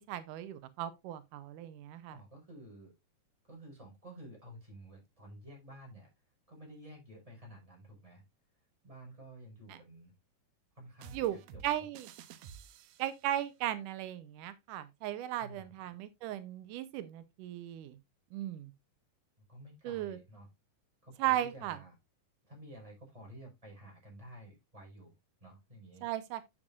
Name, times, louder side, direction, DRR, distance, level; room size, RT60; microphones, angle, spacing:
voice 1, 0.0-2.2 9.7-9.8 11.1-11.4 11.6-12.1 13.0-18.0 18.3-18.7 19.8-20.2 21.2-21.8 26.0-26.4, right 13 dB, 85° right, 2.3 m, -36 dB
voice 2, 2.1-2.9 3.4-6.1 6.5-8.2 8.8-10.1 10.7-11.6 15.4-15.9 19.4-20.5 21.0-21.9 22.4-25.1 25.4-26.1, right 1 dB, 10° right, 5.0 m, -52 dB
sound 1, 11.0-13.3, right 8 dB, 70° right, 1.8 m, -52 dB
9.7 x 7.7 x 2.5 m
omnidirectional pair, 3.7 m